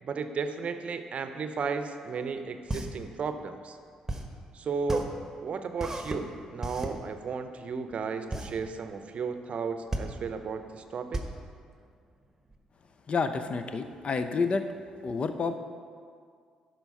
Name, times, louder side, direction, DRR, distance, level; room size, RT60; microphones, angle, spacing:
voice 1, 0.0-3.8 4.5-5.0 5.4-11.2, right 5 dB, 50° right, 8 dB, 0.7 m, -34 dB
sound 1, 2.4-12.6, right 1 dB, 15° right, 1.3 m, -36 dB
voice 2, 13.1-14.7 15.0-15.6, left 4 dB, 45° left, 8 dB, 0.6 m, -29 dB
11.5 x 4.5 x 5.5 m, 2.1 s
hypercardioid pair, 45°, 3 cm